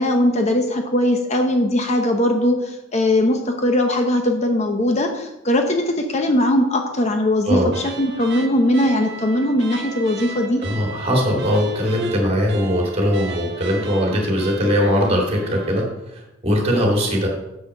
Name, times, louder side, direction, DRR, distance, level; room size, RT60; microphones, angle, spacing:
voice 1, 0.0-10.6, left 1 dB, 35° left, 4 dB, 0.8 m, -20 dB
sound 1, 7.7-16.0, right 4 dB, 60° right, 1.0 m, -36 dB
voice 2, 10.6-15.8 16.1-17.3, equal, 30° right, -1 dB, 2.4 m, -20 dB
7.2 x 6.5 x 6.0 m, 0.96 s
head